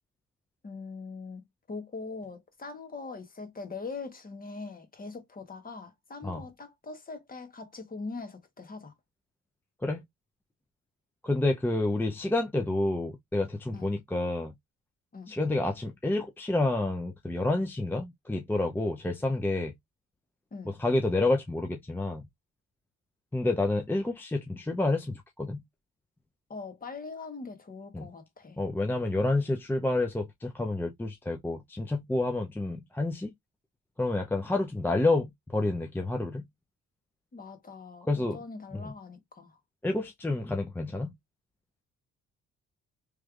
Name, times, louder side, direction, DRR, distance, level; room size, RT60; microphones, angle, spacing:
voice 1, 0.6-8.9 13.7-13.9 15.1-15.3 20.5-20.7 26.5-28.6 37.3-39.6, left 4 dB, 30° left, 1.2 m, -42 dB
voice 2, 11.2-14.5 15.3-19.7 20.7-22.2 23.3-25.6 27.9-28.1 28.6-33.3 34.0-36.4 38.1-38.4 38.7-38.9 39.8-41.1, left 2 dB, 5° left, 0.5 m, -29 dB
3.2 x 3.1 x 2.4 m
cardioid pair, 90°, 30 cm